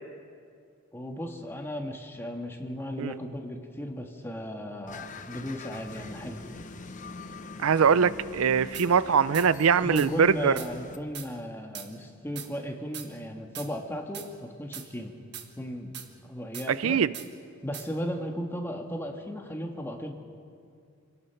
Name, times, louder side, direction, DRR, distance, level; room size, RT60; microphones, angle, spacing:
voice 1, 0.9-6.4 9.8-15.2 15.6-15.9 16.2-17.0 17.6-20.1, equal, 10° left, 2 dB, 1.5 m, -36 dB
sound 1, 4.9-11.0, left 3 dB, 35° left, 0.9 m, -43 dB
voice 2, 7.6-10.5 16.7-17.1, right 6 dB, 75° right, 17 dB, 0.5 m, -22 dB
sound 2, 8.7-8.9 9.3-9.5 10.0-10.1 10.6-10.7 11.1-11.3 11.7-11.9 12.4-12.5 12.9-13.1 13.6-13.7 14.1-14.3 14.7-14.9 15.3-15.5 15.9-16.1 16.5-16.7 17.1-17.3 17.7-17.9, right 9 dB, 55° right, 1.5 m, -40 dB
26.5 x 18.5 x 5.8 m, 2.3 s
head